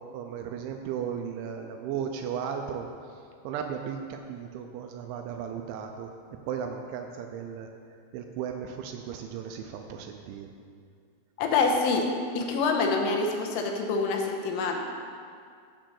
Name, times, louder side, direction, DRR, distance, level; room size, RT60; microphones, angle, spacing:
voice 1, 0.1-2.9 3.4-6.1 6.5-7.7 8.1-10.5, right 7 dB, 80° right, 4 dB, 2.8 m, -35 dB
voice 2, 11.4-12.1 12.4-14.8, left 4 dB, 85° left, 2 dB, 3.4 m, -26 dB
9.0 x 7.4 x 7.6 m, 2.2 s
omnidirectional pair, 5.7 m